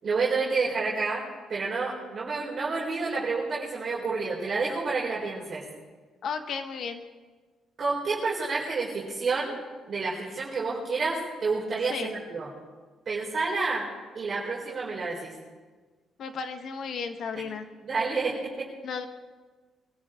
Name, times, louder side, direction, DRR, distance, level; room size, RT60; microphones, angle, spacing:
voice 1, 0.0-1.2 1.5-5.6 7.8-9.5 9.9-12.5 13.0-13.9 14.1-15.3 17.8-18.7, right 4 dB, 45° right, -6 dB, 4.7 m, -29 dB
voice 2, 6.2-7.0 11.9-12.2 16.2-17.7 18.8-19.1, left 5 dB, 65° left, 7 dB, 1.5 m, -34 dB
23.5 x 14.0 x 3.9 m, 1.4 s
cardioid pair, 90°, 0 cm